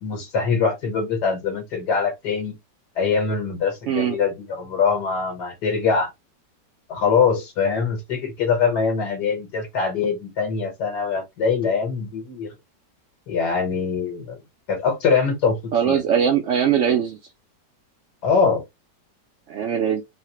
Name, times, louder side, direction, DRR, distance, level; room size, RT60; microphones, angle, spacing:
voice 1, 0.0-2.6 3.0-6.1 6.9-12.5 13.3-14.4 14.7-16.0 18.2-18.6, left 5 dB, 70° left, 1.7 m, -23 dB
voice 2, 3.9-4.2 15.7-17.2 19.5-20.0, right 8 dB, 75° right, 0.6 m, -21 dB
4.0 x 2.1 x 2.8 m
omnidirectional pair, 1.9 m